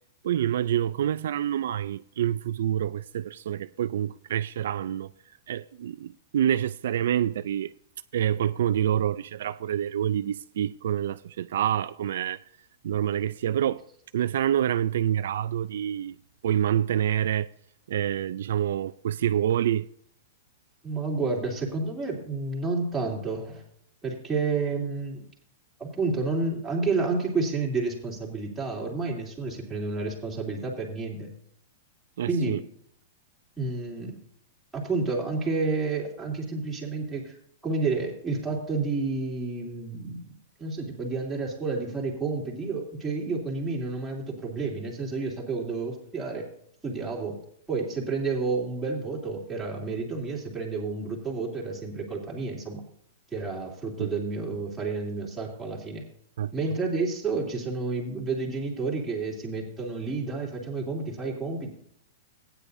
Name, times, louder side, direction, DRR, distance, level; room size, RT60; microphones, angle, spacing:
voice 1, 0.2-5.1 5.5-7.7 8.1-12.4 12.8-13.8 14.1-16.2 16.4-17.5 17.9-19.9 32.2-32.6 54.0-54.1 56.4-56.5, right 10 dB, 70° right, 0.3 m, -27 dB
voice 2, 20.8-23.6 24.0-25.2 25.8-31.3 32.3-32.6 33.6-34.2 34.7-37.4 37.6-40.3 40.6-46.5 46.8-47.4 47.7-52.8 53.3-56.0 56.5-61.7, right 3 dB, 5° right, 2.7 m, -30 dB
15.5 x 9.8 x 2.7 m
supercardioid pair, 165°, 0 cm